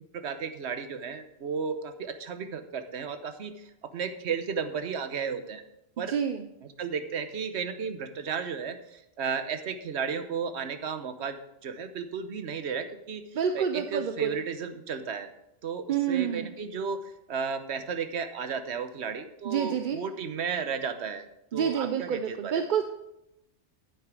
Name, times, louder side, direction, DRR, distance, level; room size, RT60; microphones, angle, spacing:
voice 1, 0.1-5.6 6.0-6.2 6.8-13.2 13.5-15.3 15.6-17.0 17.3-21.3 21.5-22.5, right 6 dB, 80° right, 8 dB, 1.2 m, -34 dB
voice 2, 6.1-6.5 13.3-14.3 15.9-16.5 19.4-20.0 21.5-22.8, right 8 dB, 55° right, 7 dB, 0.7 m, -28 dB
9.4 x 9.1 x 4.7 m, 0.83 s
omnidirectional pair, 1.1 m